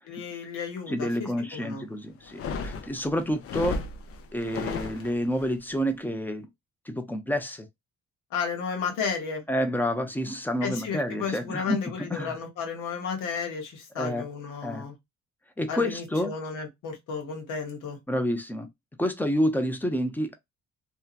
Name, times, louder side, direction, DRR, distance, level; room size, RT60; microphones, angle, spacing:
voice 1, 0.0-1.8 8.3-9.4 10.6-14.9 15.7-18.0, left 6 dB, 90° left, 1.1 m, -33 dB
voice 2, 0.9-3.8 4.3-6.5 6.9-7.7 9.5-11.8 12.1-12.4 14.0-14.3 14.6-14.8 15.6-16.3 18.1-18.7 19.0-20.3, equal, 5° left, 0.6 m, -28 dB
sound 1, 2.2-5.5, left 4 dB, 50° left, 0.6 m, -34 dB
2.7 x 2.3 x 2.4 m
cardioid pair, 90°, 30 cm